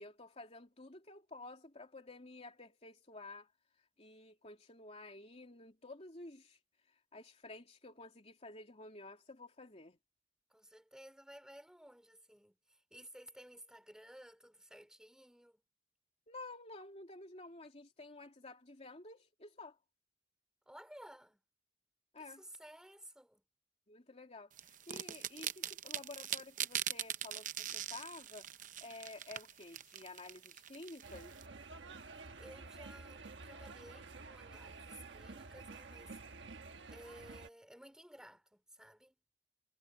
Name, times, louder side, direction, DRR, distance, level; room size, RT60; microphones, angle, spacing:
voice 1, 0.0-3.5 4.0-6.6 6.9-10.0 16.3-19.8 22.1-22.4 23.9-28.5 28.8-31.4, left 2 dB, 35° left, 3.0 m, -52 dB
voice 2, 10.5-15.6 20.7-21.4 22.2-23.4 32.4-36.2 36.9-39.2, equal, 5° right, 4.7 m, -56 dB
sound 1, 24.6-31.4, right 10 dB, 45° right, 0.7 m, -42 dB
sound 2, 31.0-37.5, right 3 dB, 85° right, 1.3 m, -51 dB
head